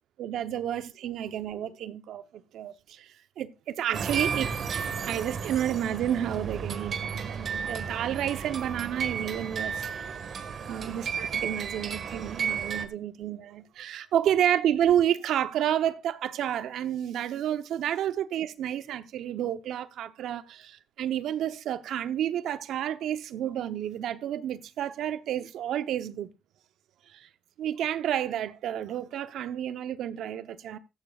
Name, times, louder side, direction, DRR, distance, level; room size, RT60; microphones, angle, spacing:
voice 1, 0.2-2.2 2.5-4.5 5.0-9.9 10.3-26.3 27.1-27.3 27.6-30.8, right 10 dB, 80° right, 0.8 m, -30 dB
sound 1, 3.9-12.9, right 6 dB, 55° right, 1.6 m, -33 dB
14.5 x 14.5 x 2.4 m
cardioid pair, 90°, 0 cm